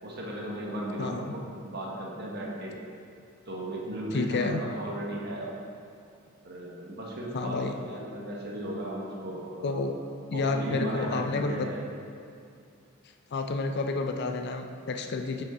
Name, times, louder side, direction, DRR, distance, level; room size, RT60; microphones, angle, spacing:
voice 1, 0.0-2.7 3.5-5.5 6.4-9.8 10.3-11.8, right 1 dB, 55° right, -3 dB, 1.3 m, -36 dB
voice 2, 1.0-1.3 4.1-4.6 7.3-7.7 9.6-9.9 10.3-11.7 13.3-15.4, left 3 dB, 55° left, 5 dB, 0.4 m, -30 dB
5.5 x 5.4 x 5.0 m, 2.5 s
head